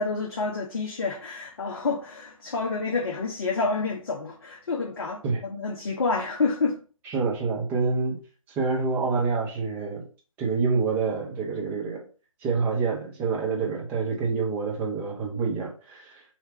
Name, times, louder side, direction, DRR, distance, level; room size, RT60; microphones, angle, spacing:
voice 1, 0.0-5.2 5.5-6.8, left 4 dB, 45° left, 0.7 m, -28 dB
voice 2, 7.0-8.2 8.6-10.0 10.4-12.0 12.4-16.2, right 4 dB, 10° right, 0.7 m, -27 dB
3.2 x 2.8 x 4.6 m
figure-of-eight pair, 140°, 18 cm